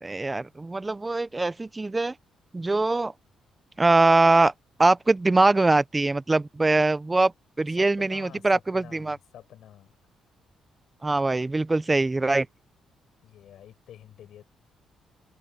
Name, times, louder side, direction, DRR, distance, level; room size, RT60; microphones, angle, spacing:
voice 1, 0.0-2.1 2.5-3.1 3.8-4.5 4.8-7.3 7.6-9.2 11.0-12.5, right 2 dB, 20° right, 0.6 m, -22 dB
voice 2, 7.7-10.0 13.2-14.4, left 11 dB, 75° left, 6.3 m, -48 dB
cardioid pair, 90°, 0 cm